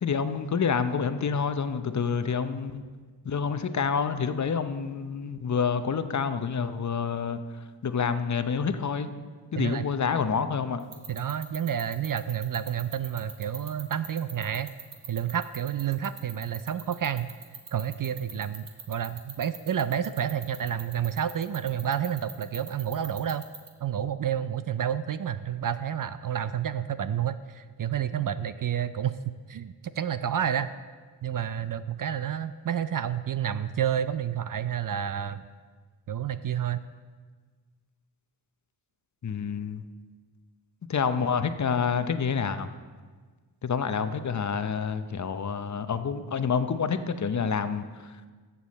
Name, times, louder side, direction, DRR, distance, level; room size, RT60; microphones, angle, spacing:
voice 1, 0.0-2.8 3.2-7.4 7.8-9.1 9.5-10.8 39.2-39.8 40.9-42.7 43.6-48.3, left 6 dB, 40° left, 10 dB, 0.7 m, -28 dB
voice 2, 9.6-9.9 11.1-14.7 15.1-17.3 17.7-23.4 23.8-30.7 31.2-35.4 36.1-36.8, right 9 dB, 50° right, 12 dB, 0.5 m, -30 dB
sound 1, 10.8-23.7, right 7 dB, 65° right, 1.5 m, -40 dB
14.0 x 7.0 x 4.2 m, 1.5 s
cardioid pair, 60°, 45 cm